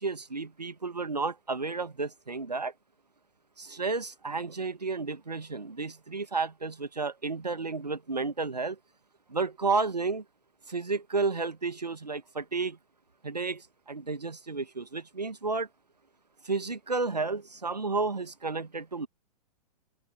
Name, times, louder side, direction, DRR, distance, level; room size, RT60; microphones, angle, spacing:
voice 1, 0.0-2.7 3.6-8.8 9.3-10.2 10.7-12.8 13.2-15.7 16.4-19.1, right 4 dB, 80° right, 1.3 m, -32 dB
open air
figure-of-eight pair, 110°, 21 cm